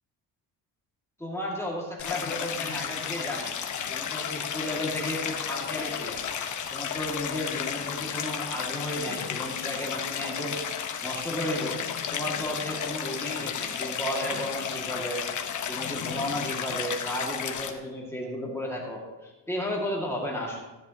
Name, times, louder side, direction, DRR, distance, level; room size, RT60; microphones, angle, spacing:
voice 1, 1.2-3.5 3.9-6.2 6.7-10.6 11.0-15.2 15.7-20.6, left 1 dB, 5° left, -3 dB, 2.0 m, -33 dB
Stream, 2.0-17.7, left 7 dB, 45° left, 1.1 m, -33 dB
15.5 x 10.5 x 2.9 m, 1.1 s
cardioid pair, 160°, 42 cm